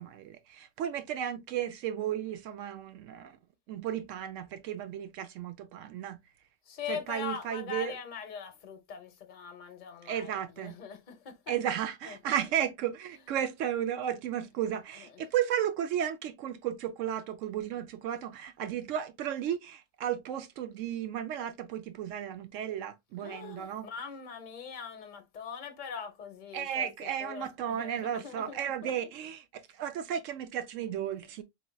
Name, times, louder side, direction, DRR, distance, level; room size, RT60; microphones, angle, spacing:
voice 1, 0.0-3.4 3.7-6.2 6.9-8.0 10.0-10.8 11.5-23.9 26.5-31.4, right 10 dB, 80° right, 1.0 m, -34 dB
voice 2, 6.7-11.6 12.0-12.5 12.8-13.4 14.9-15.3 23.2-29.0 31.2-31.4, left 7 dB, 45° left, 0.9 m, -43 dB
4.3 x 3.2 x 2.2 m
omnidirectional pair, 1.3 m